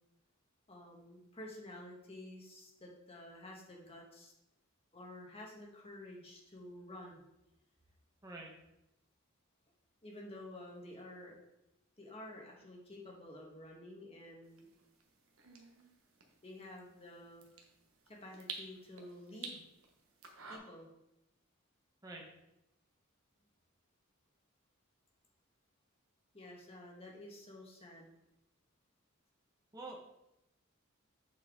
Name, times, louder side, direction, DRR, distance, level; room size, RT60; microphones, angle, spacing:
voice 1, 0.7-4.3 4.9-7.2 10.0-11.3 12.0-14.7 16.4-17.5 18.1-19.6 20.5-20.9 26.3-28.1, left 1 dB, 30° left, -1 dB, 1.5 m, -51 dB
voice 2, 8.2-8.5 22.0-22.2 29.7-30.0, right 2 dB, 15° right, -2 dB, 1.3 m, -46 dB
sound 1, 14.4-20.6, right 5 dB, 80° right, 1.1 m, -52 dB
7.9 x 4.5 x 3.8 m, 0.88 s
head